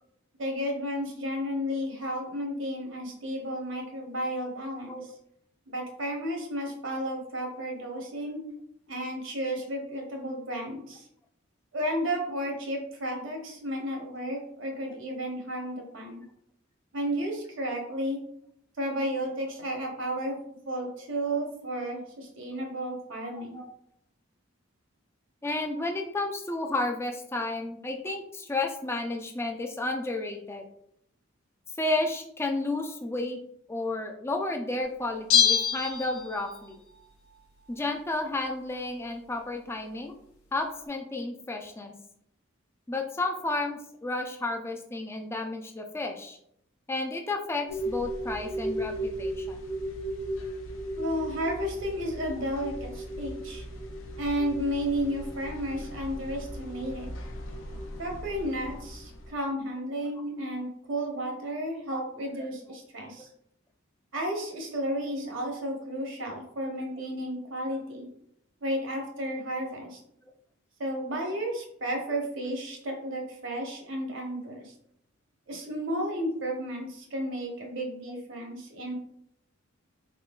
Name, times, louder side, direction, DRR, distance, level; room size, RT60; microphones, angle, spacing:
voice 1, 0.4-5.1 5.7-8.4 8.9-11.1 11.7-16.2 16.9-18.2 18.8-20.4 20.6-23.6 50.9-53.6 54.2-57.1 58.0-63.3 64.1-68.1 68.6-70.0 70.8-74.7 75.5-78.9, equal, 60° right, 1 dB, 1.0 m, -33 dB
voice 2, 25.4-30.6 31.8-33.4 33.7-36.8 37.7-40.1 40.5-41.9 42.9-46.4 46.9-49.6 61.9-62.0, left 2 dB, 10° left, 3 dB, 0.4 m, -32 dB
Bell, 35.3-36.7 37.0-37.1, left 8 dB, 85° left, 0.9 m, -24 dB
sound 1, 47.7-59.3, equal, 65° left, 0.6 m, -36 dB
4.2 x 3.7 x 2.3 m, 0.73 s
head